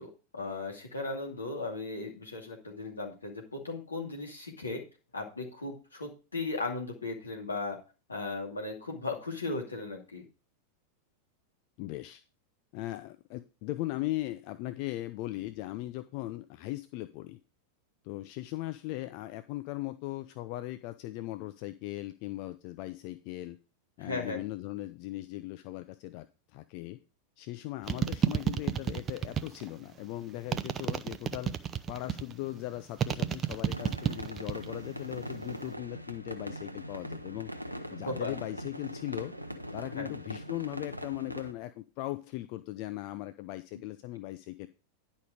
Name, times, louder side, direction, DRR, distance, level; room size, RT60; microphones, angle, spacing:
voice 1, 0.0-4.8 5.1-7.8 8.1-10.2 24.0-24.4 38.0-38.3 40.0-40.1, left 3 dB, 75° left, 2 dB, 2.4 m, -37 dB
voice 2, 11.8-12.2 12.7-17.4 18.0-23.6 24.0-26.3 26.5-27.0 27.4-31.5 31.9-37.5 37.9-39.3 39.7-44.7, left 17 dB, 45° left, 11 dB, 0.5 m, -38 dB
sound 1, 27.9-29.7 30.5-32.3 33.0-34.7 35.0-35.6, right 9 dB, 25° right, 0.6 m, -30 dB
sound 2, 33.7-41.5, equal, 85° right, 0.7 m, -41 dB
10.5 x 5.3 x 4.9 m, 0.33 s
figure-of-eight pair, 90°, 0 cm